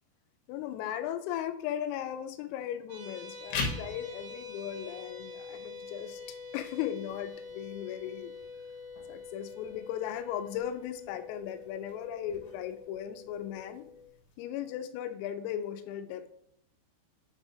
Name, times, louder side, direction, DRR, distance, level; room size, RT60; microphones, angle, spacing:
voice 1, 0.5-8.3 9.1-13.8 14.4-16.3, left 10 dB, 90° left, 9 dB, 3.3 m, -37 dB
sound 1, 2.9-14.1, left 3 dB, 65° right, 3.0 m, -46 dB
sound 2, 3.3-14.3, left 3 dB, 70° left, 3.1 m, -44 dB
9.3 x 6.2 x 2.7 m, 0.73 s
omnidirectional pair, 5.9 m